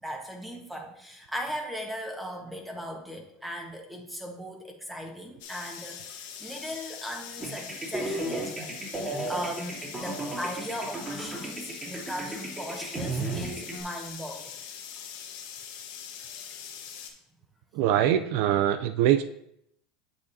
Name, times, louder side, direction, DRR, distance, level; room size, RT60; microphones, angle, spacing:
voice 1, 0.0-6.1 6.4-14.5, equal, 5° right, 1 dB, 1.4 m, -38 dB
sound 1, 5.4-17.1, left 8 dB, 75° left, 1.3 m, -42 dB
sound 2, 7.4-13.8, right 2 dB, 25° right, 2.9 m, -34 dB
voice 2, 17.7-19.2, right 11 dB, 70° right, 10 dB, 0.4 m, -23 dB
8.3 x 6.5 x 2.8 m, 0.76 s
supercardioid pair, 110°, 0 cm